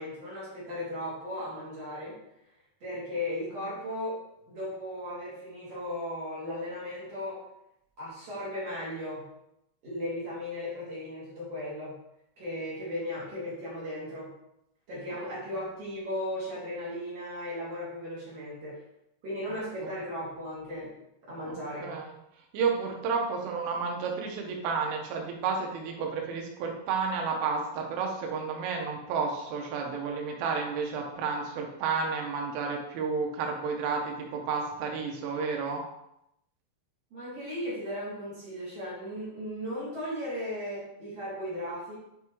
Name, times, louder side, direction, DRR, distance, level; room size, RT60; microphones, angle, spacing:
voice 1, 0.0-2.2 2.8-4.1 4.5-7.4 8.0-9.3 9.8-11.9 12.4-14.3 14.9-18.7 19.2-20.9 21.3-21.9 37.1-41.9, left 1 dB, 45° right, -9 dB, 2.2 m, -36 dB
voice 2, 21.8-22.1 22.5-35.8, right 5 dB, 85° right, 1 dB, 3.5 m, -31 dB
8.9 x 3.5 x 3.1 m, 0.82 s
omnidirectional pair, 5.7 m